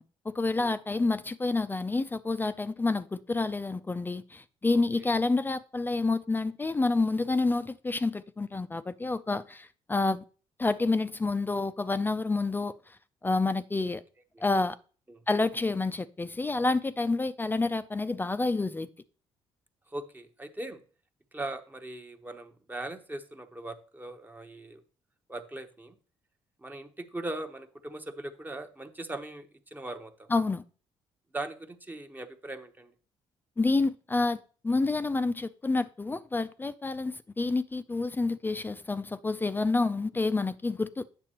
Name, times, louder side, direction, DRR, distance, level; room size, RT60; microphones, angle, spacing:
voice 1, 0.0-10.2 10.6-12.8 13.2-14.0 14.4-14.8 15.3-18.9 30.3-30.6 33.6-41.0, left 3 dB, 20° left, 0.4 m, -28 dB
voice 2, 4.7-5.1 14.3-14.4 15.1-15.2 19.9-20.8 21.3-24.8 25.3-25.9 26.6-30.3 31.3-32.9, right 2 dB, 15° right, 0.8 m, -40 dB
8.5 x 6.7 x 2.9 m
supercardioid pair, 75°, 11 cm